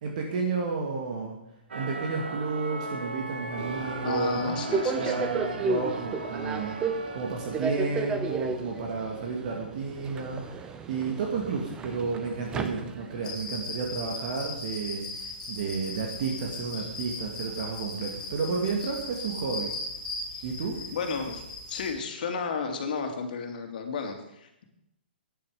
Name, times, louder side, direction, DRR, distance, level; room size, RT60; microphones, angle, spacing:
voice 1, 0.0-1.4 1.7-4.7 5.0-19.7 20.4-20.8, right 4 dB, 45° right, 0 dB, 2.4 m, -32 dB
sound 1, 1.7-8.3, right 3 dB, 80° right, 2.0 m, -38 dB
Subway metro underground, 3.6-13.3, right 4 dB, 15° right, 0.9 m, -33 dB
voice 2, 4.0-5.3 20.9-21.4 21.7-24.6, left 5 dB, 55° left, 4 dB, 2.7 m, -32 dB
sound 2, 13.2-21.9, left 2 dB, 10° left, 5.8 m, -38 dB
16.0 x 10.5 x 5.0 m, 0.84 s
hypercardioid pair, 155°, 6 cm